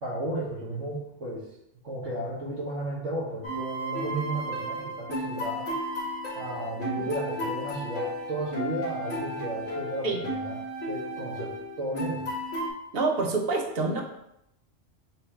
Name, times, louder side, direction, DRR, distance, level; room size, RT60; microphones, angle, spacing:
voice 1, 0.0-1.5 1.8-5.7 6.3-10.6 10.9-11.5 11.8-12.3, right 1 dB, 75° right, -9 dB, 1.4 m, -34 dB
sound 1, 3.4-12.7, equal, 85° left, 1.6 m, -34 dB
voice 2, 12.9-14.0, right 3 dB, 55° right, 2 dB, 0.9 m, -26 dB
4.5 x 2.6 x 4.4 m, 0.81 s
omnidirectional pair, 1.2 m